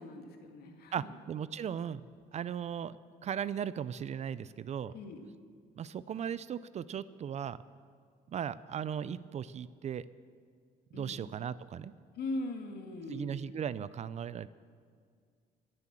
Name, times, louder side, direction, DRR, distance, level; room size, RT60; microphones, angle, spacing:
voice 1, 0.0-1.1 4.9-5.2 10.9-11.2 12.2-13.4, left 2 dB, 70° left, 5 dB, 2.0 m, -40 dB
voice 2, 0.9-2.0 2.3-2.9 3.2-4.9 5.8-7.6 8.3-10.0 10.9-11.9 13.1-14.5, right 8 dB, 40° right, 17 dB, 0.5 m, -37 dB
22.0 x 7.8 x 7.5 m, 2.1 s
cardioid pair, 110°, 17 cm